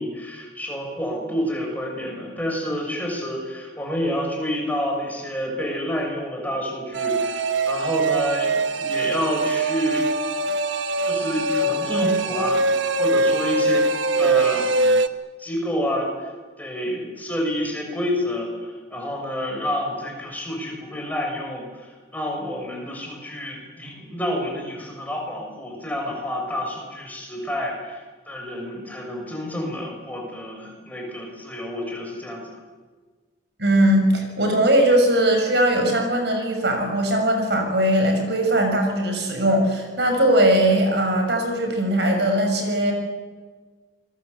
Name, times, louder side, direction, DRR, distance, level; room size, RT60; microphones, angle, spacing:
voice 1, 0.0-10.1 11.0-12.7 13.0-13.9 14.2-14.7 15.4-16.3 16.6-32.5, equal, 10° left, 0 dB, 6.8 m, -29 dB
sound 1, 6.9-15.1, right 2 dB, 75° right, 1.3 m, -22 dB
voice 2, 33.6-42.9, right 1 dB, 60° right, 4 dB, 6.5 m, -20 dB
28.0 x 22.0 x 8.3 m, 1.4 s
head